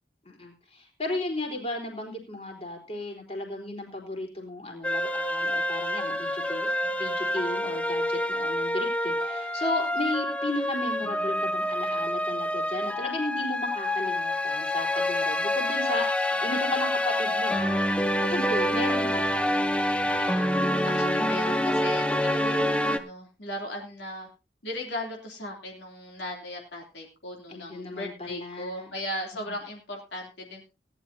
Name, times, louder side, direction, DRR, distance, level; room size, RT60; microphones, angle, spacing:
voice 1, 0.2-19.6 27.5-28.9 29.5-29.6, left 1 dB, 35° left, 1 dB, 4.1 m, -35 dB
sound 1, 4.8-23.0, left 1 dB, 5° left, 0.7 m, -27 dB
voice 2, 20.1-24.3 24.6-30.6, left 1 dB, 70° left, 0 dB, 3.1 m, -37 dB
18.5 x 11.5 x 2.8 m, 0.30 s
head